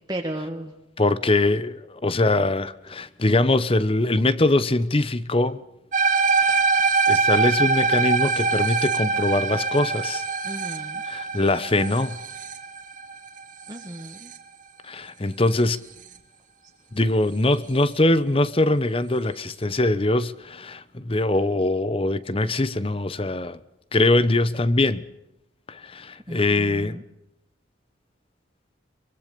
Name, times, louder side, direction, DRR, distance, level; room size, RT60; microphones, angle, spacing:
voice 1, 0.1-0.7 10.4-11.0 13.7-14.3 26.3-27.0, right 1 dB, 20° right, 1.9 m, -34 dB
voice 2, 1.0-5.6 6.3-6.7 7.1-10.2 11.0-12.2 14.8-15.8 16.9-23.6 23.9-25.0 25.7-27.0, left 2 dB, 30° left, 0.9 m, -22 dB
sound 1, 5.9-14.4, right 4 dB, 45° right, 2.3 m, -23 dB
24.0 x 23.0 x 6.8 m
head